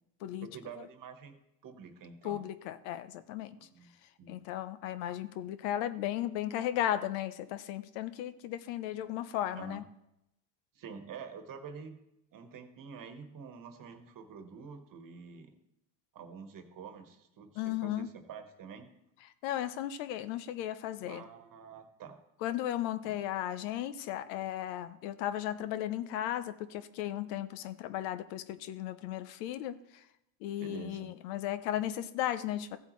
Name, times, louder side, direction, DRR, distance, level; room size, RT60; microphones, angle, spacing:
voice 1, 0.4-1.4 1.6-2.4 3.6-3.9 4.2-4.4 9.6-9.8 10.7-12.0 12.3-15.5 16.1-18.9 21.0-22.2 23.0-23.1 30.6-31.1, right 6 dB, 40° right, 8 dB, 1.3 m, -47 dB
voice 2, 2.2-3.6 4.3-9.8 17.6-18.1 19.4-21.2 22.4-30.0 30.4-32.8, left 12 dB, 80° left, 13 dB, 0.8 m, -35 dB
14.5 x 8.1 x 3.2 m, 0.84 s
cardioid pair, 120°, 50 cm